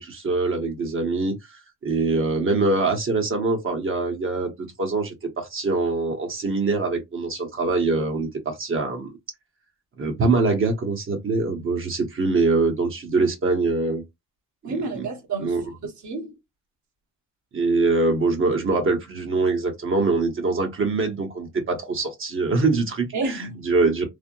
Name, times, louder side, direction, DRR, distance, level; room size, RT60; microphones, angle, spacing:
voice 1, 0.0-1.3 1.8-4.5 4.8-9.2 10.0-14.0 14.6-15.1 15.4-15.6 17.5-24.0, right 3 dB, 45° right, 1.1 m, -23 dB
voice 2, 14.6-16.3 23.1-23.6, right 3 dB, 70° right, 1.5 m, -30 dB
3.4 x 2.0 x 2.6 m
cardioid pair, 90°, 30 cm